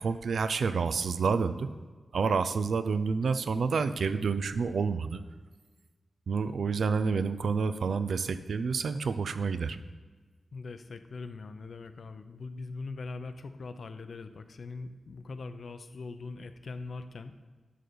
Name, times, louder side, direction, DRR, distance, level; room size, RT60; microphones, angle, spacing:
voice 1, 0.0-1.7 2.1-5.2 6.3-9.8, right 5 dB, 75° right, 12 dB, 0.5 m, -29 dB
voice 2, 10.5-17.3, left 3 dB, 60° left, 9 dB, 0.6 m, -41 dB
11.0 x 3.9 x 6.8 m, 1.4 s
wide cardioid pair, 135°, 0 cm